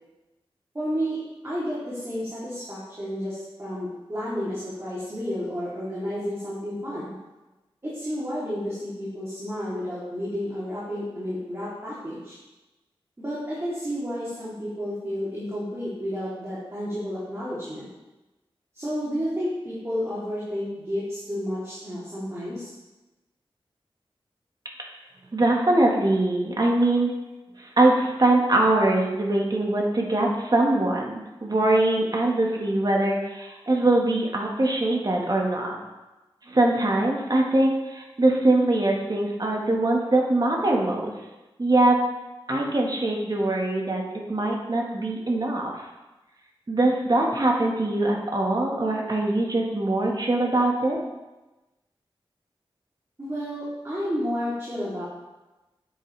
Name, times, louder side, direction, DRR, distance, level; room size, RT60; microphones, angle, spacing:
voice 1, 0.7-1.2 1.4-7.2 7.8-12.4 13.2-17.9 18.7-22.7 53.2-55.0, equal, 30° right, -10 dB, 3.3 m, -31 dB
voice 2, 25.3-27.1 27.6-35.8 36.5-41.1 41.6-42.0 42.5-45.7 46.7-51.0, right 2 dB, 45° right, -1 dB, 1.8 m, -22 dB
9.1 x 8.6 x 3.4 m, 1.1 s
wide cardioid pair, 70°, 10 cm